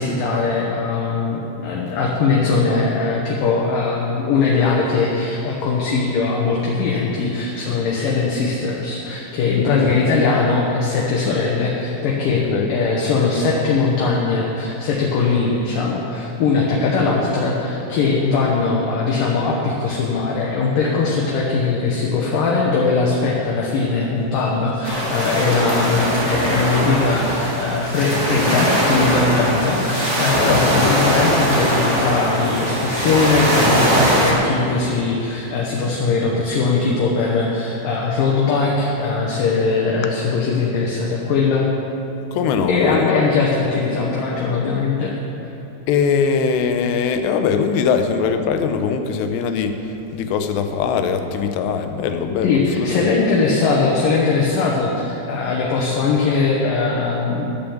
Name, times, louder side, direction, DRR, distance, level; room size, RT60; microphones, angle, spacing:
voice 1, 0.0-41.7 42.7-45.1 52.4-57.4, left 4 dB, 65° left, -3 dB, 2.4 m, -20 dB
voice 2, 12.3-12.7 30.5-30.9 42.3-43.3 45.9-49.8 50.1-53.1, left 6 dB, 85° left, 7 dB, 2.9 m, -21 dB
sound 1, 24.8-34.3, right 1 dB, 40° right, 1.0 m, -20 dB
11.5 x 8.7 x 7.1 m, 2.9 s
omnidirectional pair, 4.9 m